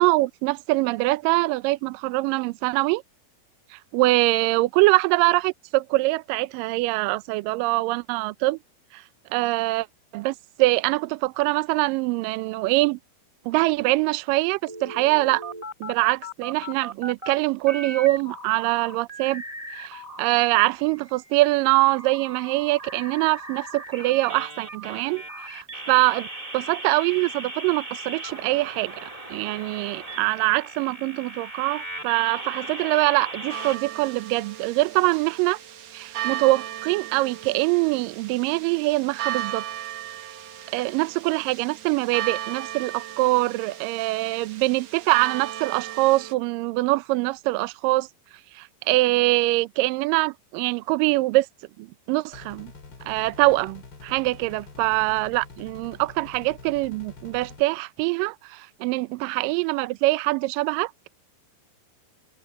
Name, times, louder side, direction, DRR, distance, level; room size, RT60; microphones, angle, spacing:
voice 1, 0.0-3.0 3.7-8.6 8.9-9.0 9.3-9.9 10.1-13.0 13.5-15.4 15.8-19.4 19.8-26.3 26.5-35.6 35.9-39.6 40.7-48.1 48.6-51.5 51.8-52.7 53.0-60.9, right 21 dB, 85° right, 2.0 m, -23 dB
sound 1, 14.7-17.3 17.6-20.2 20.6-33.8, right 2 dB, 15° right, 1.4 m, -38 dB
sound 2, 33.5-46.3, right 12 dB, 60° right, 1.9 m, -36 dB
sound 3, 52.3-57.6, left 4 dB, 40° left, 2.7 m, -45 dB
open air
omnidirectional pair, 4.7 m